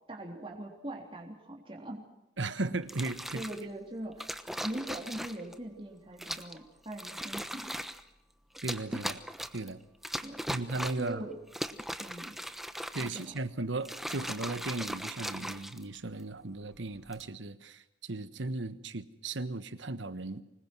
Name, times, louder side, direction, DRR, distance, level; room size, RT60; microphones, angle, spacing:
voice 1, 0.1-2.0 3.3-4.3 4.6-7.8 10.2-10.4 10.9-11.4 12.0-12.4 13.0-13.4, right 1 dB, 30° right, 0 dB, 3.5 m, -41 dB
voice 2, 2.4-3.4 8.6-9.2 9.5-9.8 10.5-11.2 12.9-20.4, right 2 dB, 85° right, 13 dB, 1.4 m, -36 dB
sound 1, 2.8-3.6 4.2-5.5 6.2-6.6 6.9-8.0 8.5-9.7 10.0-11.1 11.5-13.4 13.8-16.2 16.9-17.3, equal, ahead, 1.0 m, -39 dB
25.0 x 21.0 x 6.2 m, 0.89 s
head